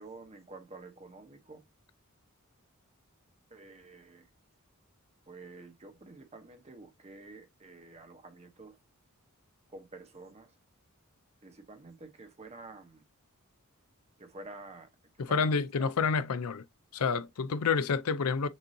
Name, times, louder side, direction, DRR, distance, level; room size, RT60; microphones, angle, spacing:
voice 1, 0.0-1.6 3.5-4.3 5.3-8.8 9.7-10.6 11.4-13.0 14.2-15.9, right 3 dB, 30° right, 0.9 m, -49 dB
voice 2, 15.2-16.6 16.9-18.5, left 5 dB, 90° left, 0.5 m, -29 dB
6.2 x 2.6 x 2.7 m
head